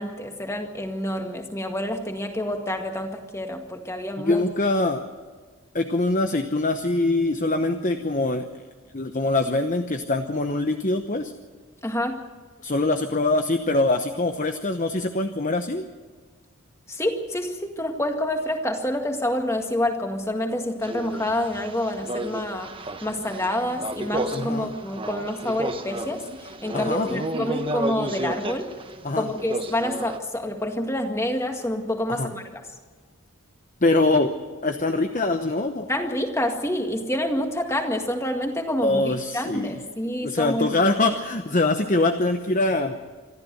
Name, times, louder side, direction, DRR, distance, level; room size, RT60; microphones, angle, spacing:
voice 1, 0.0-4.4 11.8-12.2 16.9-22.7 23.0-28.7 29.1-32.6 35.9-40.8, left 1 dB, 10° left, 4 dB, 1.9 m, -28 dB
voice 2, 4.2-5.1 5.7-8.5 8.9-11.3 12.6-15.9 24.3-24.7 26.7-27.3 29.0-29.3 32.1-32.3 33.8-34.3 34.6-35.9 38.8-39.8 40.2-43.1, left 2 dB, 35° left, 6 dB, 0.9 m, -23 dB
sound 1, 20.8-30.2, right 1 dB, 25° right, 1.1 m, -32 dB
26.5 x 13.0 x 7.9 m, 1.5 s
head